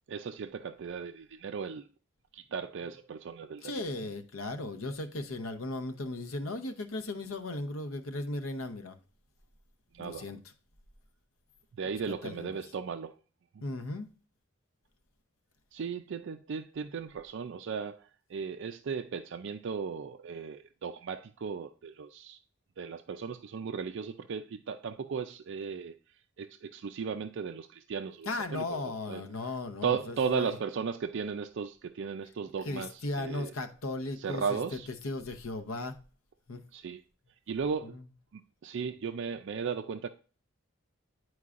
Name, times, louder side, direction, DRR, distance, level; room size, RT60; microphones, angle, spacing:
voice 1, 0.1-1.9 2.3-3.7 9.9-10.3 11.7-13.1 13.5-13.6 15.7-22.4 22.8-26.0 26.4-29.2 29.8-33.5 34.2-34.9 36.7-37.0 37.5-38.0 38.3-40.1, right 6 dB, 60° right, 0.4 m, -36 dB
voice 2, 3.6-9.0 10.0-10.4 12.2-12.6 13.6-14.1 28.3-30.6 32.7-34.6 35.0-36.0 36.5-36.6 37.8-38.0, left 2 dB, 80° left, 0.8 m, -36 dB
9.6 x 4.6 x 2.5 m
head